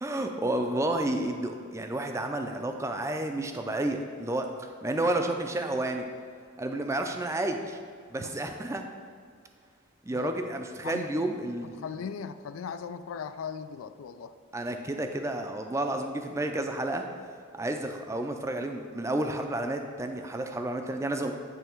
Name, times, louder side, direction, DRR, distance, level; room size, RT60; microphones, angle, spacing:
voice 1, 0.0-6.1 6.6-7.8 8.1-8.9 10.1-11.9 14.5-17.0 17.5-21.3, right 1 dB, 15° right, 5 dB, 0.4 m, -31 dB
voice 2, 11.8-14.3, left 6 dB, 85° left, 11 dB, 0.3 m, -38 dB
9.1 x 3.3 x 4.5 m, 2.1 s
head